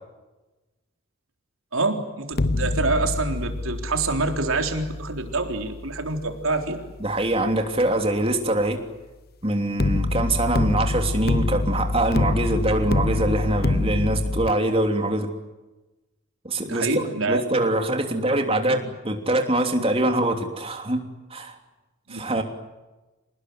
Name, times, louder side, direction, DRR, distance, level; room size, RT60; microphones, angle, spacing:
voice 1, 1.7-6.8 16.6-17.4 22.1-22.2, right 3 dB, 75° right, 4 dB, 4.0 m, -26 dB
sound 1, 2.3-7.4 9.8-14.5, left 2 dB, 45° left, 0.9 m, -26 dB
voice 2, 7.0-8.8 9.4-15.3 16.4-21.0 21.3-21.6 22.1-22.4, right 1 dB, 25° right, 5 dB, 3.1 m, -24 dB
27.5 x 20.0 x 9.6 m, 1.1 s
head